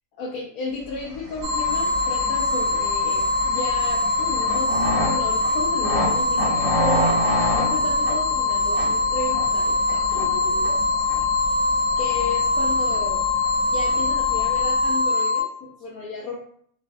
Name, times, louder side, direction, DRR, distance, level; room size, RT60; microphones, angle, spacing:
voice 1, 0.2-10.8 12.0-13.2 13.7-16.4, left 3 dB, 80° left, -3 dB, 1.0 m, -33 dB
sound 1, 1.0-14.9, equal, 25° right, 1.5 m, -30 dB
sound 2, 1.4-15.4, left 3 dB, 70° right, 1.0 m, -23 dB
3.1 x 2.3 x 2.5 m, 0.64 s
omnidirectional pair, 1.5 m